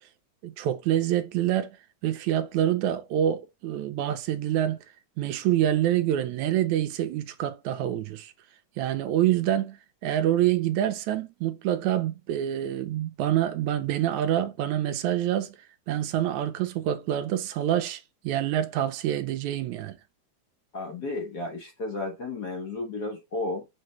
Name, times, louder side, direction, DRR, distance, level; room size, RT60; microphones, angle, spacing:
voice 1, 0.4-1.8 2.0-4.8 5.2-8.3 8.8-9.8 10.0-15.6 15.9-20.0, right 11 dB, 80° right, 2.1 m, -26 dB
voice 2, 20.7-23.7, left 2 dB, 55° left, 1.1 m, -33 dB
7.8 x 4.3 x 3.2 m
omnidirectional pair, 3.5 m